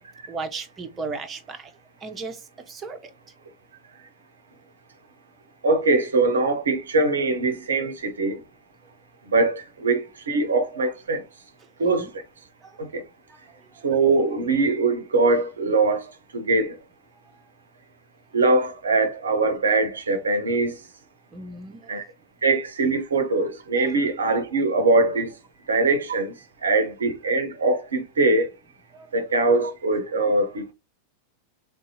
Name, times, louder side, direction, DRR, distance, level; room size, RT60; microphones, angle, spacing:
voice 1, 0.3-1.7 2.0-3.1 11.8-12.1 12.6-12.9 13.3-13.4 17.3-17.4 21.3-21.9 23.8-24.0 26.6-26.8 28.9-29.1, right 4 dB, 20° right, 0.6 m, -36 dB
voice 2, 5.6-8.4 9.3-11.2 11.8-12.1 12.8-13.0 13.8-16.8 18.3-20.7 21.9-22.0 22.4-25.3 25.7-26.3 26.6-28.5 29.1-30.7, right 3 dB, 70° right, 0.6 m, -22 dB
3.4 x 2.7 x 2.6 m
figure-of-eight pair, 90°, 0 cm